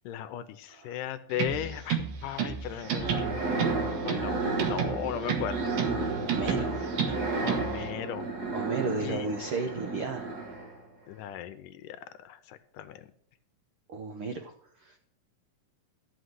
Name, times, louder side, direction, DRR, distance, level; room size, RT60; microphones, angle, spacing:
voice 1, 0.1-3.5 4.1-4.4 4.7-5.6 6.0-6.1 7.4-8.3 9.0-9.3 11.1-13.1, left 11 dB, 75° left, 11 dB, 2.1 m, -37 dB
sound 1, 1.3-7.9, right 7 dB, 70° right, 3.0 m, -33 dB
sound 2, 2.8-10.9, right 3 dB, 40° right, 1.6 m, -32 dB
voice 2, 6.3-6.8 8.5-10.3 13.9-14.5 14.8-15.0, right 4 dB, 90° right, 4 dB, 1.2 m, -34 dB
13.0 x 5.8 x 7.9 m, 0.65 s
omnidirectional pair, 4.0 m